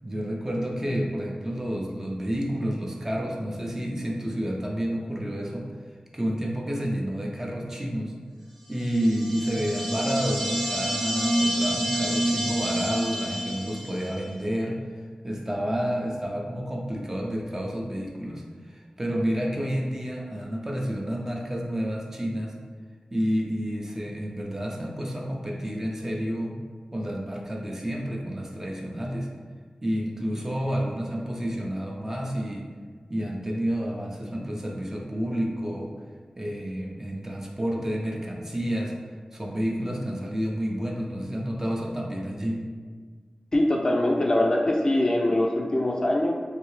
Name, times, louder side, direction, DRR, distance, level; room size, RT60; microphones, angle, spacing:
voice 1, 0.0-5.7 6.1-8.1 8.7-14.8 15.2-22.5 23.1-26.6 26.9-29.3 29.8-32.7 33.1-35.9 36.4-38.9 39.3-42.6, equal, 20° right, -2 dB, 0.6 m, -30 dB
sound 1, 8.8-14.2, equal, 5° right, 0.9 m, -28 dB
voice 2, 43.5-46.3, left 1 dB, 35° left, 0 dB, 0.4 m, -23 dB
3.3 x 2.7 x 3.1 m, 1.5 s
wide cardioid pair, 80°, 2 cm